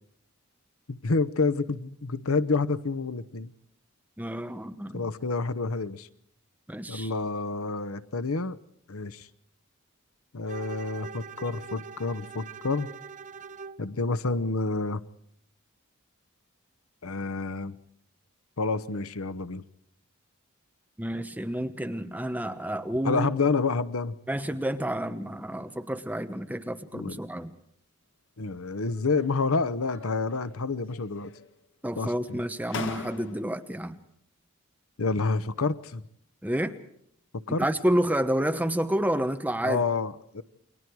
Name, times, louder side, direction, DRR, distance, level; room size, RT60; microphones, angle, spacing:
voice 1, 0.9-3.5 4.9-6.1 6.9-8.6 8.9-9.3 10.3-12.9 13.8-15.0 17.0-17.8 18.6-19.6 23.0-24.1 26.9-27.2 28.4-31.3 32.0-32.4 35.0-36.0 37.3-37.6 39.6-40.4, left 3 dB, 75° left, 15 dB, 0.9 m, -28 dB
voice 2, 4.2-5.0 6.7-7.1 21.0-23.3 24.3-27.6 31.8-34.0 36.4-36.8 37.6-39.8, right 1 dB, 10° right, 8 dB, 1.0 m, -29 dB
Bowed string instrument, 10.5-13.9, right 5 dB, 35° right, 0.8 m, -43 dB
sound 1, 28.8-29.4 29.8-30.6 30.9-31.6 32.3-32.4 32.7-33.7, left 3 dB, 60° left, 1.8 m, -40 dB
29.0 x 23.0 x 4.7 m, 0.68 s
head